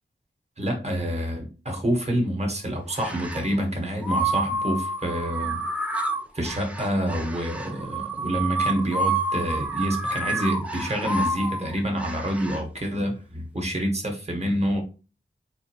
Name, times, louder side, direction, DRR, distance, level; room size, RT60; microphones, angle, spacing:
voice 1, 0.6-5.6 6.3-14.8, equal, 35° right, 1.1 m, -27 dB
sound 1, 2.9-3.5 4.0-12.6, right 2 dB, 5° right, 0.5 m, -29 dB
3.9 x 2.5 x 2.9 m
wide cardioid pair, 80°, 20 cm